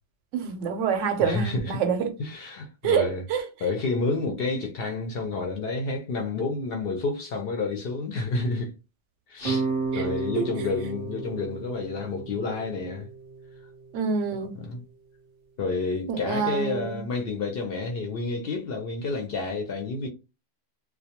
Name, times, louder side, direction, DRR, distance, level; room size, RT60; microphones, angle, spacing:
voice 1, 0.3-2.1 2.8-3.4 9.9-10.1 10.4-10.7 13.9-14.7 16.1-17.0, right 6 dB, 85° right, 0.9 m, -27 dB
voice 2, 1.2-1.8 2.2-3.2 3.6-8.7 9.3-9.7 9.9-13.1 14.5-14.8 15.6-20.1, left 3 dB, 60° left, 0.7 m, -30 dB
sound 1, 9.4-14.5, right 4 dB, 35° right, 0.6 m, -33 dB
2.2 x 2.1 x 2.8 m
omnidirectional pair, 1.2 m